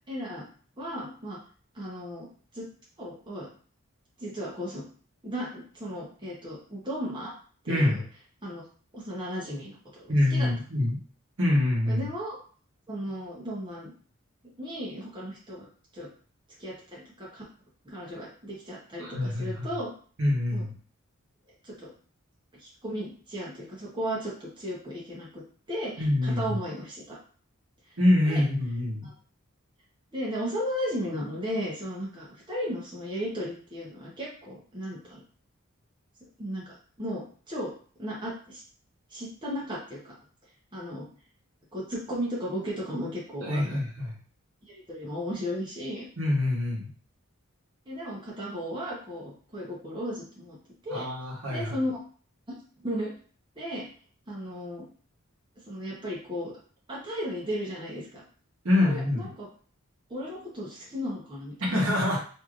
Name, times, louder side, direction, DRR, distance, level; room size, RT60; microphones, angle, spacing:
voice 1, 0.1-0.4 0.8-1.4 1.7-2.3 2.5-2.7 3.0-3.5 4.2-4.9 5.2-7.3 7.6-8.0 8.4-8.6 8.9-10.5 11.9-12.4 12.9-13.9 14.6-15.7 15.9-16.1 16.6-17.4 17.8-19.9 20.5-20.7 21.6-21.9 22.6-25.4 25.7-27.2 28.2-28.4 29.0-29.1 30.1-35.2 36.4-37.7 38.0-38.6 39.1-40.1 40.7-41.1 41.7-43.8 44.7-46.0 47.9-50.6 50.8-51.1 51.5-52.0 52.8-53.1 53.6-53.8 54.3-54.9 55.7-56.5 56.9-58.2 58.8-59.5 60.1-61.7, equal, 20° right, -5 dB, 0.8 m, -35 dB
voice 2, 7.7-8.0 10.1-11.0 11.4-12.1 19.0-19.7 20.2-20.7 26.0-26.6 28.0-29.1 43.4-44.2 46.2-46.9 50.9-51.8 58.6-59.3 61.6-62.2, left 1 dB, 60° right, -3 dB, 1.0 m, -25 dB
3.1 x 2.7 x 2.4 m, 0.43 s
head